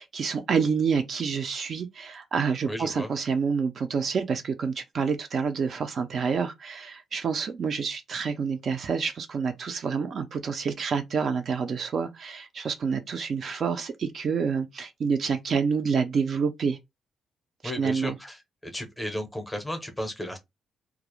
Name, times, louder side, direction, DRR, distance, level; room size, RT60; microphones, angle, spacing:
voice 1, 0.0-16.8 17.6-18.2, right 6 dB, 45° right, 0.3 m, -28 dB
voice 2, 2.7-3.1 17.6-18.4 18.6-20.4, equal, 5° left, 0.6 m, -34 dB
2.3 x 2.0 x 2.9 m
cardioid pair, 160°, 0 cm